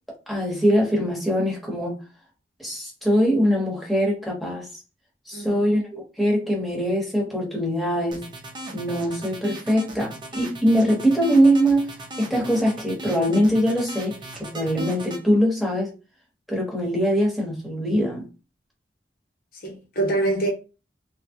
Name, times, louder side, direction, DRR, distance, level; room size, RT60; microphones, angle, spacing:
voice 1, 0.3-2.0 2.6-4.7 5.3-8.2 8.7-11.9 12.2-14.1 14.4-15.9 16.5-18.3, equal, ahead, 1.3 m, -22 dB
voice 2, 5.3-5.7 19.5-20.5, right 2 dB, 55° left, 0.9 m, -25 dB
sound 1, 8.1-15.2, right 2 dB, 25° right, 0.8 m, -36 dB
3.4 x 2.3 x 2.9 m
head